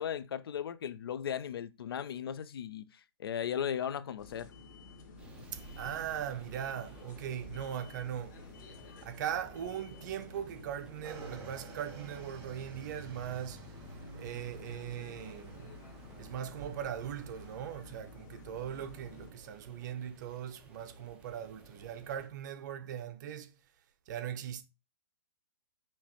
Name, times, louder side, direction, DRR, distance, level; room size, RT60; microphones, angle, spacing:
voice 1, 0.0-2.9 3.2-4.5, left 9 dB, 65° left, 0.5 m, -36 dB
sound 1, 4.2-19.3, left 4 dB, 45° left, 1.2 m, -52 dB
sound 2, 5.2-22.3, right 2 dB, 10° right, 1.0 m, -56 dB
voice 2, 5.5-8.4 9.0-13.6 14.1-15.7 16.2-23.5 24.1-24.6, right 9 dB, 45° right, 0.7 m, -40 dB
Motorcycle / Engine, 11.0-17.6, right 4 dB, 25° right, 2.4 m, -51 dB
5.6 x 2.9 x 3.0 m
hypercardioid pair, 135°, 13 cm